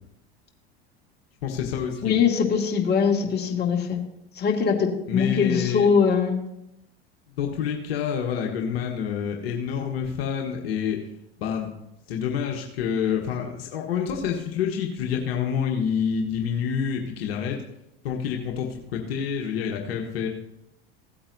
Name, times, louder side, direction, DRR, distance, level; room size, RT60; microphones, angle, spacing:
voice 1, 1.4-2.1 5.1-5.9 7.4-11.0 11.4-11.7 12.1-17.6 18.0-20.3, left 7 dB, 70° left, 1 dB, 1.3 m, -28 dB
voice 2, 2.0-4.0 4.4-6.4, left 6 dB, 30° left, 1 dB, 2.2 m, -22 dB
16.5 x 8.6 x 2.7 m, 0.84 s
hypercardioid pair, 80°, 31 cm